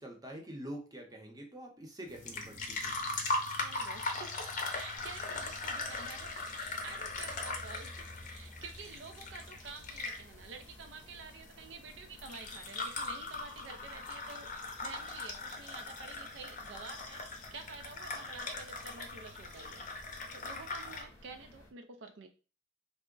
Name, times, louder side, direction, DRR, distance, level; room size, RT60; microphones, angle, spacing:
voice 1, 0.0-2.9, right 1 dB, 20° right, 1 dB, 0.7 m, -46 dB
sound 1, 2.1-21.0, left 3 dB, 45° left, 0.6 m, -40 dB
voice 2, 3.6-14.5 14.8-19.9 20.3-22.3, right 4 dB, 70° right, 6 dB, 0.4 m, -49 dB
sound 2, 4.9-21.7, left 1 dB, 15° left, 0.8 m, -58 dB
3.4 x 2.0 x 3.7 m, 0.34 s
head